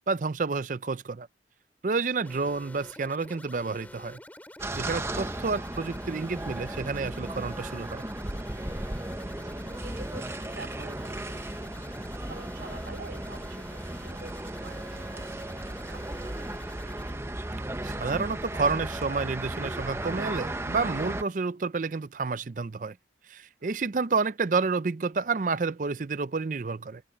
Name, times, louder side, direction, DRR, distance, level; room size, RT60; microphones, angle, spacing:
voice 1, 0.1-1.3 1.8-4.2 4.7-8.0 17.8-23.0 23.3-27.0, right 4 dB, 45° right, 0.5 m, -30 dB
sound 1, 2.2-17.1, left 1 dB, 10° left, 2.7 m, -48 dB
sound 2, 4.6-21.2, right 1 dB, 15° right, 0.8 m, -35 dB
voice 2, 8.8-15.6 15.8-16.5 23.6-23.9, right 3 dB, 80° right, 3.2 m, -48 dB
open air
head